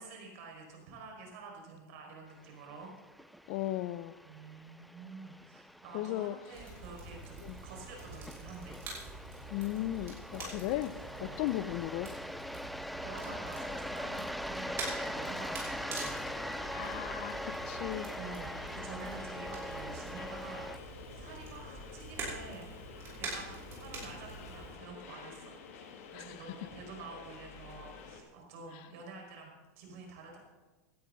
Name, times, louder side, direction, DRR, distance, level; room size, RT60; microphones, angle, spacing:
voice 1, 0.0-2.9 4.2-8.8 11.1-11.4 13.0-16.4 18.2-22.7 23.2-25.5 26.1-30.4, right 4 dB, 70° right, 5.3 m, -49 dB
sound 1, 2.5-20.8, equal, ahead, 0.4 m, -42 dB
voice 2, 3.5-4.2 5.9-6.4 7.4-7.6 9.5-12.1 16.7-18.2 26.1-26.4 28.7-28.8, left 15 dB, 55° left, 0.6 m, -36 dB
Crackle, 6.5-24.7, right 2 dB, 35° right, 5.4 m, -46 dB
sound 2, 15.7-28.2, left 5 dB, 80° left, 2.5 m, -50 dB
17.5 x 12.5 x 4.0 m
supercardioid pair, 140°, 8 cm